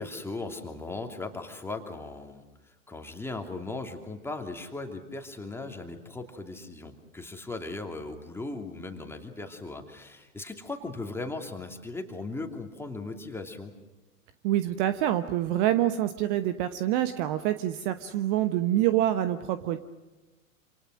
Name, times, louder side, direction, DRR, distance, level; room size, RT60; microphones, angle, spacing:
voice 1, 0.0-13.7, left 3 dB, 5° left, 4 dB, 2.8 m, -38 dB
voice 2, 14.4-19.8, right 13 dB, 40° right, 11 dB, 1.1 m, -26 dB
27.5 x 27.5 x 6.4 m, 1.1 s
figure-of-eight pair, 95°, 42 cm